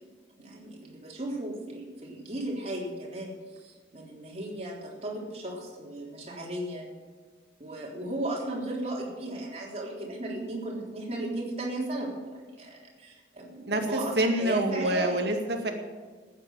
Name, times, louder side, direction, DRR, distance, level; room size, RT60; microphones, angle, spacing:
voice 1, 0.0-7.0 7.6-15.2, right 1 dB, 35° right, -2 dB, 3.6 m, -35 dB
voice 2, 13.7-15.7, right 1 dB, 60° right, 4 dB, 2.0 m, -27 dB
14.5 x 9.6 x 7.4 m, 1.5 s
head